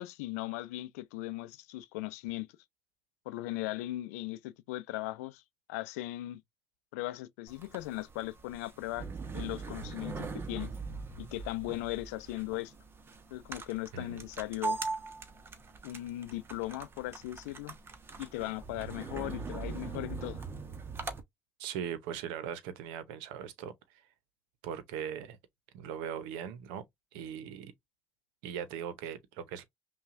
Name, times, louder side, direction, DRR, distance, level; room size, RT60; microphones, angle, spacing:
voice 1, 0.0-2.5 3.3-5.4 5.7-6.4 6.9-9.1 9.3-10.7 11.2-12.7 13.3-14.8 15.8-17.8 18.2-20.4, left 17 dB, 90° left, 0.5 m, -38 dB
sound 1, 7.5-21.2, right 4 dB, 30° right, 0.9 m, -41 dB
voice 2, 21.6-24.0 24.6-25.4 25.7-26.8 27.1-27.7 28.4-29.6, right 8 dB, 80° right, 0.8 m, -39 dB
5.6 x 2.3 x 2.5 m
supercardioid pair, 90°, 8 cm